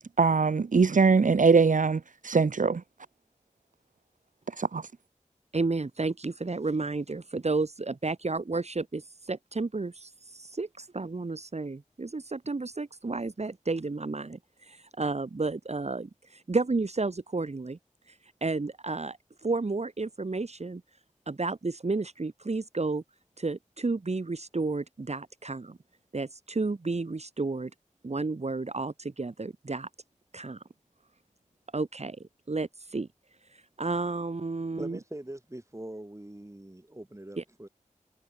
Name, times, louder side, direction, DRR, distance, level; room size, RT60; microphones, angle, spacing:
voice 1, 0.2-2.8 4.6-4.8, right 4 dB, 75° right, 0.9 m, -22 dB
voice 2, 5.5-17.8 18.1-20.8 21.3-23.0 23.4-25.8 26.1-27.7 28.0-29.9 30.3-30.6 31.7-33.1 33.5-35.0 37.4-37.5, right 3 dB, 55° right, 1.7 m, -32 dB
voice 3, 34.8-37.7, right 1 dB, 20° right, 7.1 m, -42 dB
wide cardioid pair, 60°, 13 cm